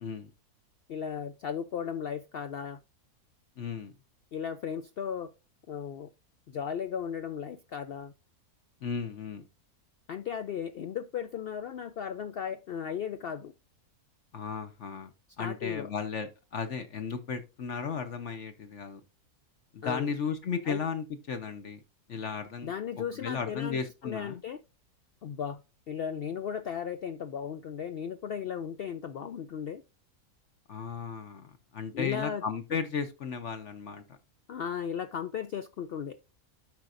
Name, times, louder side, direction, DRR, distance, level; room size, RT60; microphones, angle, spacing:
voice 1, 0.9-2.8 4.3-5.3 5.7-6.1 6.5-8.1 10.1-13.5 15.4-15.9 19.8-20.1 20.6-20.8 22.6-24.6 25.2-25.6 25.9-29.8 31.9-32.4 34.5-36.2, left 8 dB, 90° left, 0.5 m, -36 dB
voice 2, 3.6-3.9 8.8-9.4 14.3-15.1 15.4-19.0 19.7-21.8 22.1-22.7 23.0-24.4 30.7-34.2, left 6 dB, 55° left, 1.1 m, -35 dB
12.5 x 4.5 x 2.4 m
omnidirectional pair, 1.6 m